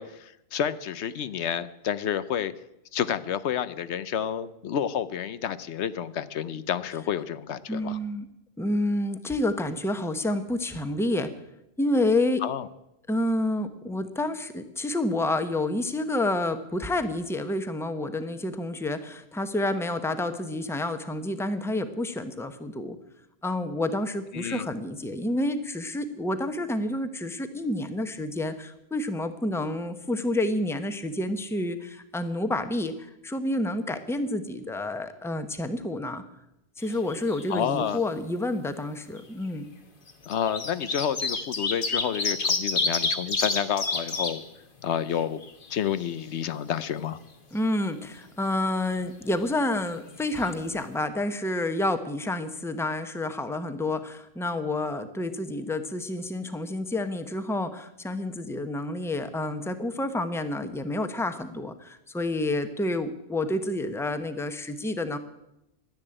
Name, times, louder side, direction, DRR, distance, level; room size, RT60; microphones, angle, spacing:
voice 1, 0.0-2.5 2.9-8.0 12.4-12.7 24.3-24.6 37.5-38.0 40.3-44.4 44.8-45.4 45.7-47.2, left 9 dB, 80° left, 14 dB, 1.0 m, -29 dB
voice 2, 7.7-8.3 8.6-11.3 11.8-12.4 13.1-23.0 23.4-36.2 36.8-39.7 47.5-65.2, left 1 dB, 5° left, 9 dB, 0.8 m, -29 dB
sound 1, 36.8-37.6 37.8-37.9 39.1-39.2 40.1-44.3 44.8-44.9 45.1-46.2 50.1-50.2 50.4-50.5, left 3 dB, 50° left, 1.5 m, -28 dB
12.0 x 10.5 x 8.8 m, 0.87 s
omnidirectional pair, 1.1 m